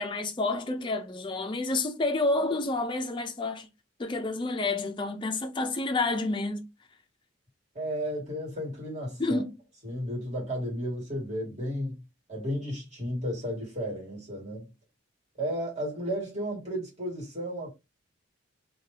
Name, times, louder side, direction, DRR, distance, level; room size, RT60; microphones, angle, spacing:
voice 1, 0.0-3.7 4.0-6.7 9.2-9.5, left 2 dB, 25° left, 0.3 m, -29 dB
voice 2, 7.7-9.4 9.8-12.0 12.3-14.7 15.4-17.7, equal, 35° right, 1.6 m, -33 dB
2.7 x 2.2 x 3.2 m
head